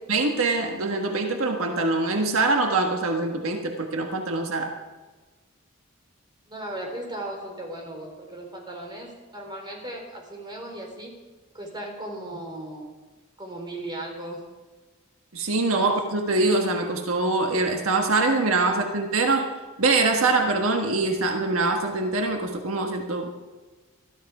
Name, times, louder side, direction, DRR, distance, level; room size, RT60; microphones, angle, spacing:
voice 1, 0.1-4.7 15.3-19.5 19.8-23.4, right 3 dB, 80° right, 3 dB, 1.5 m, -24 dB
voice 2, 6.5-11.1 11.5-12.9 13.4-14.4 15.8-15.9 18.6-18.7, right 1 dB, 20° right, 1 dB, 4.1 m, -37 dB
20.5 x 13.5 x 4.9 m, 1.3 s
head